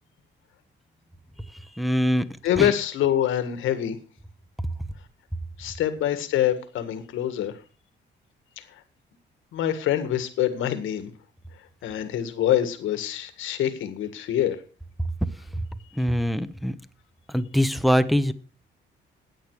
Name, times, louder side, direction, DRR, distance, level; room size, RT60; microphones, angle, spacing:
voice 1, 1.8-2.2 2.6-2.7 16.0-16.7 17.3-18.3, equal, ahead, 14 dB, 1.0 m, -22 dB
voice 2, 2.4-4.0 5.6-7.6 8.6-8.8 9.5-11.1 11.8-14.6, left 11 dB, 85° left, 10 dB, 1.8 m, -25 dB
14.0 x 9.0 x 4.8 m, 0.37 s
cardioid pair, 90°, 20 cm